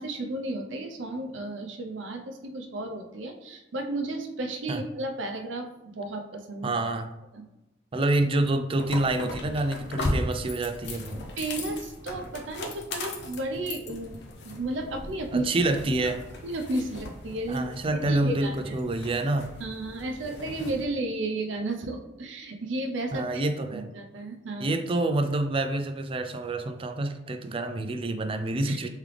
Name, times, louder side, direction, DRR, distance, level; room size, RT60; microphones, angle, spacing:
voice 1, 0.0-6.7 7.3-7.4 11.4-14.2 14.4-15.5 16.4-18.7 19.6-23.4 23.7-24.7 28.7-28.8, right 2 dB, 70° right, 3 dB, 0.6 m, -33 dB
voice 2, 6.6-7.1 7.9-11.2 15.3-16.2 17.5-19.5 23.1-23.9 24.6-28.9, right 2 dB, 30° right, 7 dB, 0.4 m, -27 dB
sound 1, 8.8-20.8, left 2 dB, 60° left, 0.6 m, -37 dB
3.7 x 3.2 x 3.3 m, 0.96 s
head